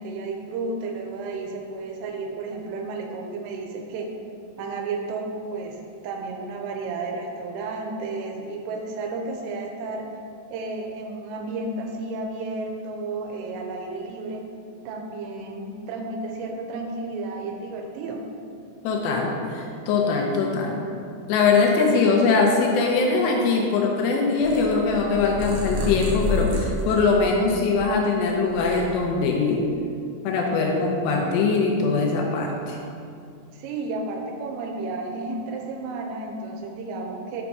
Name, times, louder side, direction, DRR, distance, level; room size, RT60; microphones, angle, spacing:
voice 1, 0.0-4.1 4.6-10.1 10.5-14.4 14.9-18.2 33.5-37.4, right 3 dB, 90° right, 2 dB, 3.2 m, -32 dB
voice 2, 18.8-20.8 21.3-29.6 30.2-32.8, left 4 dB, 80° left, 0 dB, 2.5 m, -22 dB
Purr, 24.4-27.9 28.3-29.4, left 2 dB, 70° right, 3.3 m, -29 dB
7.3 x 5.2 x 4.6 m, 2.5 s
omnidirectional pair, 5.7 m